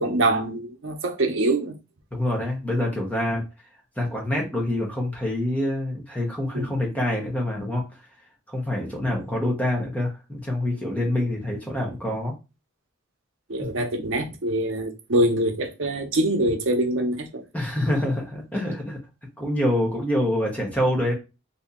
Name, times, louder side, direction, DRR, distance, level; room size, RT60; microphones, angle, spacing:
voice 1, 0.0-1.7 6.5-6.8 13.5-17.4, right 1 dB, 65° right, 0.7 m, -24 dB
voice 2, 2.1-3.4 4.0-7.8 8.5-12.3 13.7-13.8 17.5-19.0 19.4-21.1, left 1 dB, 5° left, 0.9 m, -26 dB
2.8 x 2.6 x 3.7 m
head